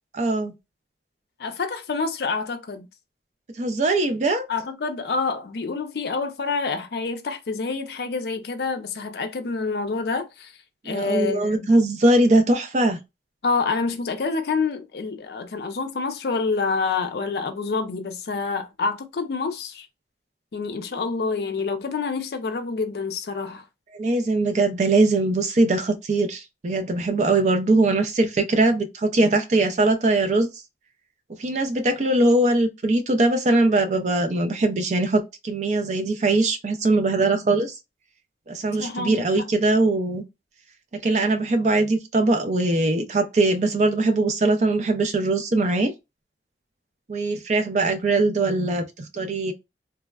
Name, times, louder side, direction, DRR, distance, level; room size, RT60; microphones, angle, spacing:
voice 1, 0.1-0.5 3.6-4.4 10.8-13.0 23.9-30.5 31.4-37.7 38.5-40.2 40.9-45.9 47.1-49.5, right 2 dB, 40° right, 0.4 m, -21 dB
voice 2, 1.4-2.9 4.5-10.5 10.8-11.7 13.4-19.9 20.5-23.6 38.8-39.5, left 4 dB, 60° left, 0.4 m, -27 dB
3.3 x 2.0 x 2.2 m
head